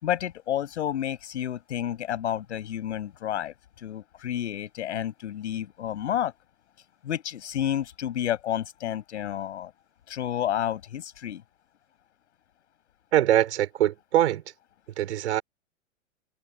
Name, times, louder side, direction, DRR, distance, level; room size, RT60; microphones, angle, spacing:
voice 1, 0.0-6.3 7.0-9.7 10.1-11.4, left 10 dB, 60° left, 5.7 m, -30 dB
voice 2, 13.1-14.4 15.0-15.4, right 12 dB, 60° right, 4.8 m, -23 dB
figure-of-eight pair, 100°, 38 cm